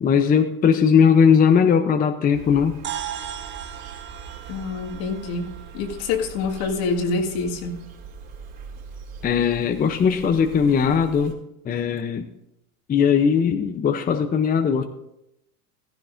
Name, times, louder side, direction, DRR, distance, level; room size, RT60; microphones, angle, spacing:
voice 1, 0.0-2.8 9.2-12.3 12.9-14.8, left 7 dB, 20° left, 7 dB, 0.7 m, -19 dB
Insect, 2.3-11.3, right 6 dB, 50° right, 4.2 m, -41 dB
sound 1, 2.8-7.4, right 10 dB, 25° right, 0.6 m, -37 dB
voice 2, 4.5-7.8, left 4 dB, 65° left, 2 dB, 2.0 m, -26 dB
15.0 x 14.5 x 2.6 m, 0.83 s
supercardioid pair, 105°, 45 cm